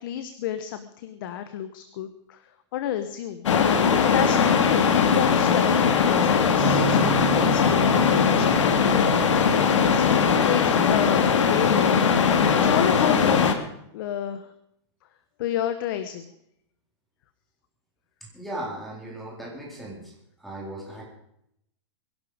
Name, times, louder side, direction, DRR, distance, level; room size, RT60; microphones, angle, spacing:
voice 1, 0.0-2.4 2.7-9.1 9.3-13.4 13.9-14.5 15.4-16.3, left 10 dB, 45° left, 10 dB, 1.1 m, -31 dB
sound 1, 3.5-13.6, left 6 dB, 85° left, 2.4 m, -20 dB
Bass guitar, 6.6-12.8, right 10 dB, 20° right, 1.4 m, -34 dB
voice 2, 18.2-20.1 20.4-21.1, right 1 dB, ahead, -3 dB, 4.2 m, -37 dB
22.0 x 11.5 x 5.1 m, 0.76 s
supercardioid pair, 165°, 15 cm